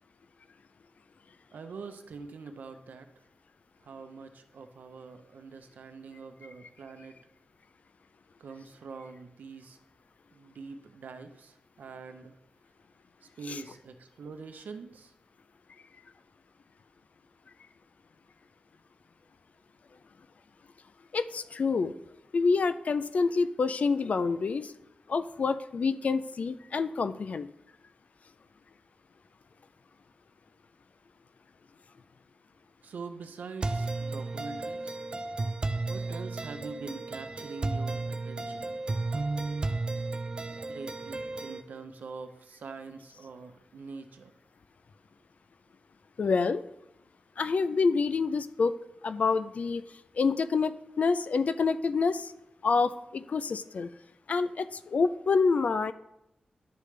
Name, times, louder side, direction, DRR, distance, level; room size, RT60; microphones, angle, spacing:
voice 1, 1.5-3.1 3.8-7.2 8.4-9.8 10.3-12.4 13.2-15.1 32.8-35.0 35.9-38.8 40.5-44.3, right 4 dB, 90° right, 8 dB, 0.7 m, -44 dB
voice 2, 21.1-21.9 22.3-24.7 25.1-27.5 46.2-46.6 47.4-48.7 49.0-49.8 50.2-52.3 52.6-53.9 54.3-55.9, left 4 dB, 55° left, 12 dB, 0.4 m, -27 dB
sound 1, 33.6-41.6, right 3 dB, 35° right, 0.5 m, -33 dB
11.5 x 5.0 x 3.2 m, 0.85 s
wide cardioid pair, 115°, 3 cm